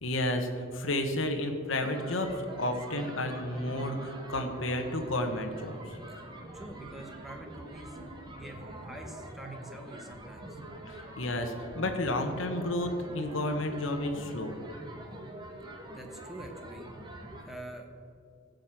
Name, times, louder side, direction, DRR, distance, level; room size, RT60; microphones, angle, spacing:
voice 1, 0.0-5.8 10.9-14.5, left 1 dB, 65° left, 5 dB, 1.1 m, -31 dB
sound 1, 1.8-17.5, right 1 dB, 20° right, 1.4 m, -45 dB
voice 2, 6.5-8.0 8.3-10.6 15.9-16.9 17.5-17.9, right 1 dB, ahead, 2 dB, 1.2 m, -46 dB
15.5 x 5.3 x 7.5 m, 2.3 s
head